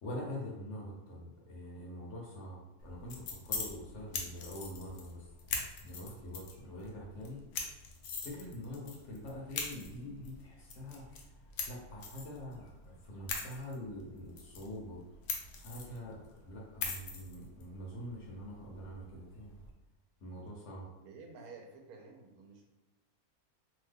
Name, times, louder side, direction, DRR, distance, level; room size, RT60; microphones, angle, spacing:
voice 1, 0.0-5.2 5.8-7.4 8.2-11.1 11.6-15.0 15.5-19.6 20.2-20.9, left 1 dB, 60° left, -2 dB, 1.0 m, -45 dB
sound 1, 2.8-19.7, left 4 dB, 85° left, 1.1 m, -43 dB
voice 2, 21.0-22.6, right 4 dB, 80° right, 2 dB, 1.0 m, -51 dB
2.9 x 2.2 x 3.4 m, 1.0 s
omnidirectional pair, 1.6 m